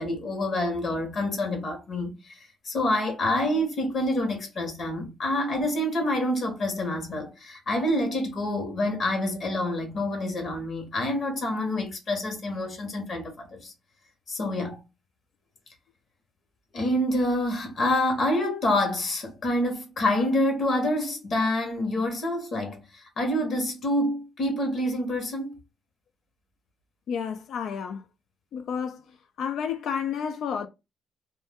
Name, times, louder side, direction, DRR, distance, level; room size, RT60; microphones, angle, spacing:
voice 1, 0.0-2.4 2.6-13.7 14.3-14.8 16.7-25.6, left 1 dB, 55° left, 1.2 m, -27 dB
voice 2, 27.1-28.0 28.5-30.7, left 7 dB, 70° left, 0.3 m, -31 dB
2.6 x 2.1 x 3.4 m
cardioid pair, 90°, 0 cm